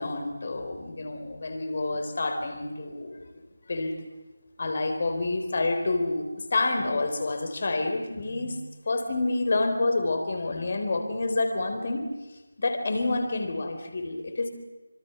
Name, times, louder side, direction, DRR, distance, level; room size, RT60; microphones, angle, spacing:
voice 1, 0.0-3.3 3.7-4.0 4.6-12.1 12.6-14.5, left 2 dB, 40° left, 6 dB, 4.0 m, -28 dB
26.0 x 25.5 x 7.1 m, 1.2 s
figure-of-eight pair, 160°, 0 cm